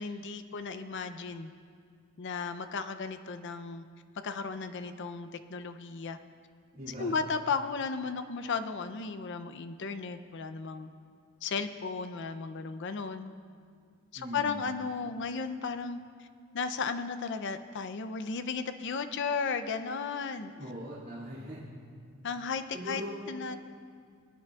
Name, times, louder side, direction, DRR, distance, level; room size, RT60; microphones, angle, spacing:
voice 1, 0.0-1.5 2.2-3.8 4.2-6.2 6.9-10.9 11.4-13.3 14.1-16.3 16.5-20.5 22.2-23.0 23.3-23.6, left 5 dB, 55° left, 9 dB, 0.5 m, -35 dB
voice 2, 6.7-7.2 14.1-14.6 20.6-21.6 22.7-23.2, equal, 40° right, -10 dB, 2.2 m, -40 dB
22.0 x 9.1 x 2.4 m, 2.2 s
head